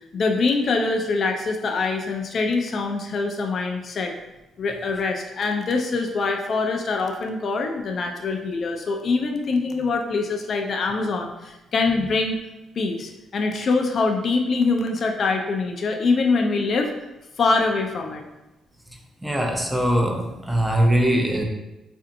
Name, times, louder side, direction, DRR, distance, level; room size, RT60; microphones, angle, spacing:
voice 1, 0.1-4.1 4.6-12.4 12.8-16.9 17.4-18.2, left 3 dB, 50° left, 3 dB, 0.4 m, -24 dB
voice 2, 19.2-21.4, right 1 dB, 10° right, 2 dB, 0.6 m, -21 dB
4.1 x 2.6 x 2.6 m, 0.97 s
cardioid pair, 90°, 0 cm